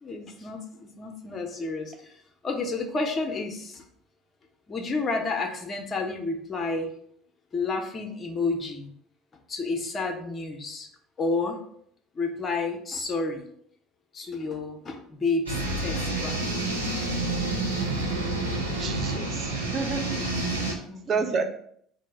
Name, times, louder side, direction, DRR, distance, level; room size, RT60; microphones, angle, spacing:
voice 1, 0.0-3.8 4.7-6.9 7.5-8.9 9.5-10.9 11.2-11.6 12.1-13.5 14.1-16.4 20.4-21.4, left 3 dB, 30° left, 4 dB, 0.7 m, -31 dB
sound 1, 15.5-20.7, right 2 dB, 90° right, 0.7 m, -28 dB
voice 2, 18.8-20.2 21.1-21.4, right 5 dB, 40° right, 5 dB, 0.6 m, -29 dB
4.4 x 2.1 x 4.5 m, 0.67 s
figure-of-eight pair, 60°, 0 cm